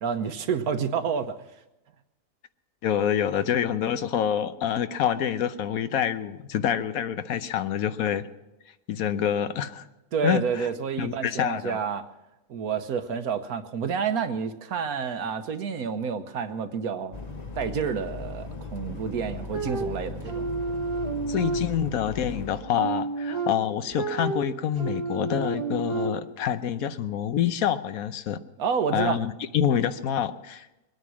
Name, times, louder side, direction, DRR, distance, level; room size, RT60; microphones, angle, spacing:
voice 1, 0.0-1.4 10.1-12.0 12.5-17.1 17.6-20.5 28.6-29.2, right 6 dB, 85° right, 10 dB, 1.4 m, -29 dB
voice 2, 2.8-8.3 8.9-9.9 10.2-10.7 11.0-11.8 21.3-28.4 28.9-30.7, left 9 dB, 75° left, 12 dB, 1.2 m, -27 dB
sound 1, 17.1-22.6, left 4 dB, 35° left, 0.9 m, -38 dB
sound 2, 19.5-22.1 22.5-26.4, right 4 dB, 20° right, 1.1 m, -31 dB
22.0 x 9.4 x 6.2 m, 0.98 s
omnidirectional pair, 1.5 m